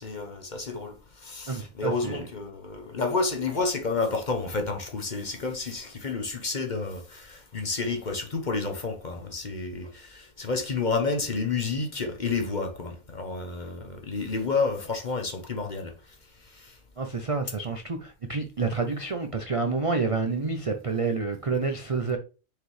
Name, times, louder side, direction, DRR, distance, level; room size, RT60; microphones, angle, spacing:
voice 1, 0.0-15.9 16.4-16.8, left 4 dB, 35° left, 1.0 m, -30 dB
voice 2, 1.5-2.3 17.0-22.2, right 4 dB, 45° right, 0.4 m, -28 dB
6.4 x 4.9 x 3.2 m
omnidirectional pair, 1.5 m